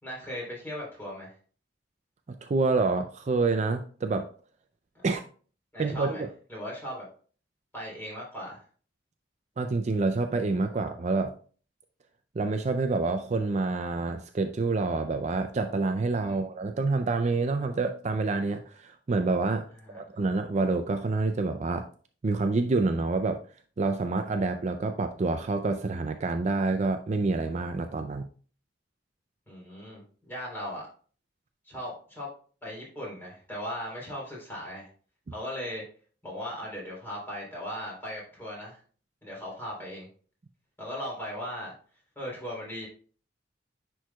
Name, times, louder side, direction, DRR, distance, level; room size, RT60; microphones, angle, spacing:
voice 1, 0.0-1.3 4.9-5.0 5.7-6.2 6.5-7.1 7.7-8.6 16.2-16.4 19.8-20.0 29.5-30.8 31.6-32.3 32.6-34.9 35.3-35.8 36.2-38.8 39.2-40.1 40.8-41.7 42.1-42.9, equal, 10° left, -4 dB, 3.4 m, -38 dB
voice 2, 2.3-4.3 5.0-5.2 5.8-6.3 9.6-11.3 12.4-19.7 19.9-21.9 22.2-23.4 23.8-28.3, right 3 dB, 40° right, 7 dB, 0.4 m, -27 dB
10.0 x 4.6 x 2.3 m, 0.42 s
head